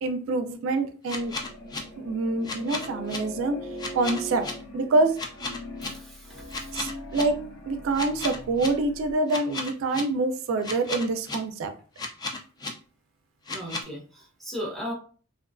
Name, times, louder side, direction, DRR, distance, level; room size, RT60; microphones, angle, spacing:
voice 1, 0.0-1.3 2.0-3.6 3.9-4.5 4.7-5.2 6.7-11.7, right 2 dB, 80° right, 7 dB, 0.3 m, -26 dB
sound 1, 1.1-1.8 2.4-3.2 3.8-4.5 5.2-5.9 6.5-7.2 7.9-8.7 9.3-10.0 10.6-11.4 12.0-12.7 13.5-13.8, left 3 dB, 20° left, 0.3 m, -33 dB
sound 2, 1.2-9.1, left 1 dB, 85° left, 0.6 m, -41 dB
voice 2, 5.8-6.8 13.5-14.9, equal, ahead, -4 dB, 0.8 m, -37 dB
2.4 x 2.2 x 2.4 m, 0.40 s
head